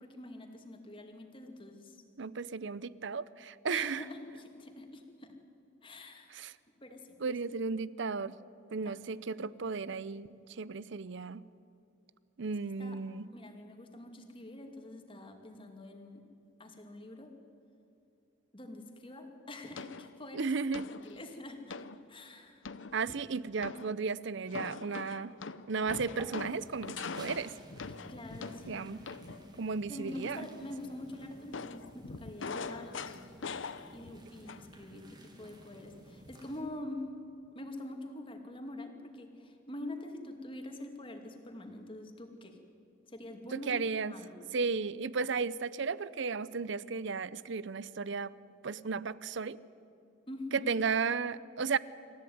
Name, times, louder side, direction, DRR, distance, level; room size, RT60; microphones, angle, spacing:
voice 1, 0.0-2.0 3.7-5.3 5.8-6.5 6.8-7.4 8.8-9.0 9.3-9.5 12.8-13.0 13.3-16.2 16.6-17.3 18.5-20.6 21.0-22.7 28.1-29.1 29.9-33.4 33.9-37.0 37.5-42.6 43.1-44.4 50.3-50.7, left 1 dB, 25° left, 4 dB, 2.4 m, -45 dB
voice 2, 2.2-4.0 6.3-6.5 7.2-8.3 8.7-11.4 12.4-13.3 20.3-20.9 22.9-25.3 25.7-27.5 28.7-29.0 29.6-30.5 43.5-44.1 44.5-48.3 48.6-49.6 50.5-51.8, right 5 dB, 65° right, 19 dB, 0.6 m, -34 dB
sound 1, 19.8-20.2 20.7-21.2 21.7-22.0 22.6-23.2 23.6-24.0 24.5-29.5 31.5-34.2 34.5-34.8, left 4 dB, 70° left, 0.8 m, -42 dB
sound 2, 26.1-36.6, right 1 dB, 20° right, 2.6 m, -54 dB
26.5 x 14.5 x 9.4 m, 2.7 s
head